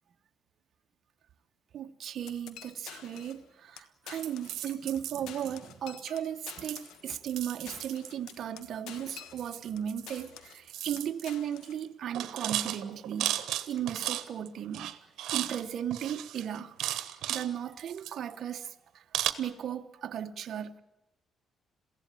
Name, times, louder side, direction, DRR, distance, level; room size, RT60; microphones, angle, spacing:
voice 1, 1.7-13.3 13.7-16.8 17.3-20.8, right 9 dB, 60° right, 1.1 m, -36 dB
sound 1, 2.3-3.5 3.8-5.0 5.3-9.8 10.1-10.7 11.0-11.8, left 10 dB, 90° left, 1.3 m, -49 dB
sound 2, 4.2-5.5 6.0-6.3 6.6-8.7 9.4-10.3 10.5-11.3 11.6-11.8 12.1-14.5 14.7-15.6 15.9-17.5 17.8-18.5 19.1-19.3, right 13 dB, 85° right, 1.2 m, -35 dB
23.0 x 16.0 x 9.2 m
cardioid pair, 90°, 0 cm